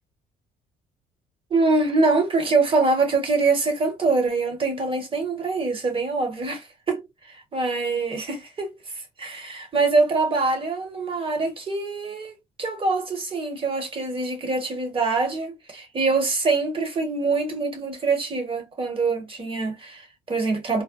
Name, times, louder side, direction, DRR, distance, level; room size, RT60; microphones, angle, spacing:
voice 1, 1.5-7.0 7.3-8.7 9.2-20.8, right 3 dB, 35° right, 1.5 m, -24 dB
3.4 x 2.2 x 2.4 m
cardioid pair, 85°, 15 cm